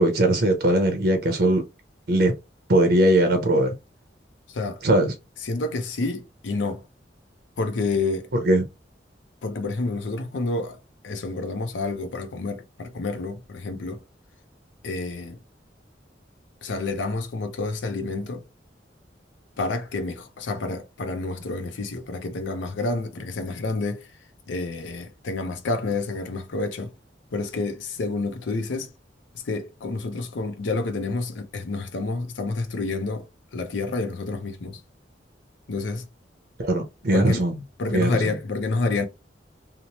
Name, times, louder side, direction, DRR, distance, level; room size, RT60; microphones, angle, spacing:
voice 1, 0.0-1.6 2.1-2.3 2.7-3.7 4.8-5.1 8.4-8.6 36.6-37.6 37.9-38.3, right 1 dB, 60° right, 0.6 m, -20 dB
voice 2, 4.5-4.8 5.4-6.8 7.6-8.3 9.4-10.8 11.0-14.0 14.8-15.4 16.6-18.4 19.6-24.1 24.5-26.9 27.3-28.9 29.3-33.3 33.5-34.8 35.7-36.0 37.1-37.5 37.8-39.1, left 3 dB, 85° left, 0.5 m, -29 dB
2.9 x 2.0 x 2.7 m
head